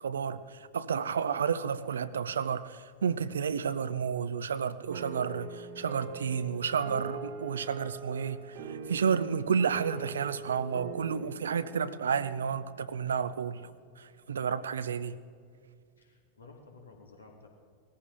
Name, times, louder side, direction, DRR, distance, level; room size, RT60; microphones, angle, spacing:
voice 1, 0.0-13.7 14.0-15.2, right 6 dB, 65° right, 14 dB, 0.5 m, -31 dB
sound 1, 4.9-13.4, right 4 dB, 50° right, 1.0 m, -43 dB
voice 2, 16.0-17.5, left 3 dB, 75° left, 1 dB, 2.3 m, -53 dB
20.0 x 14.0 x 3.4 m, 2.2 s
figure-of-eight pair, 90°, 0 cm